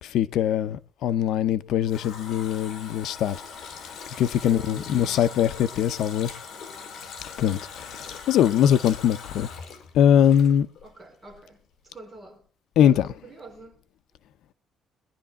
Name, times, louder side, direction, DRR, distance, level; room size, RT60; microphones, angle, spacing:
voice 1, 0.0-3.4 3.8-6.3 7.4-9.5 9.9-10.7 12.8-13.1, left 10 dB, 80° left, 0.6 m, -22 dB
Water tap faucet, 1.4-11.0 11.3-11.4, left 5 dB, 60° left, 2.9 m, -41 dB
voice 2, 4.4-5.4 10.8-12.4 12.8-13.8, right 1 dB, 15° right, 4.1 m, -45 dB
22.5 x 11.0 x 3.6 m
cardioid pair, 170°, 0 cm